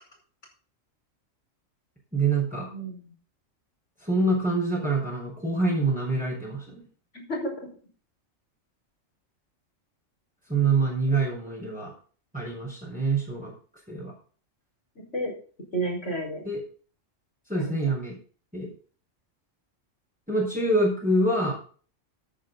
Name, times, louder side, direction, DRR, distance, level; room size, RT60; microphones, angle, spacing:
voice 1, 2.1-2.7 4.0-6.8 10.5-11.9 12.3-13.5 13.9-14.1 16.5-16.6 17.5-18.2 18.5-18.7 20.3-21.5, right 2 dB, 5° right, -5 dB, 5.2 m, -25 dB
voice 2, 2.7-3.1 7.1-7.5 15.0-15.3 15.7-16.4 17.5-17.8, right 1 dB, 65° left, 0 dB, 5.6 m, -31 dB
14.0 x 9.6 x 4.1 m, 0.42 s
omnidirectional pair, 1.3 m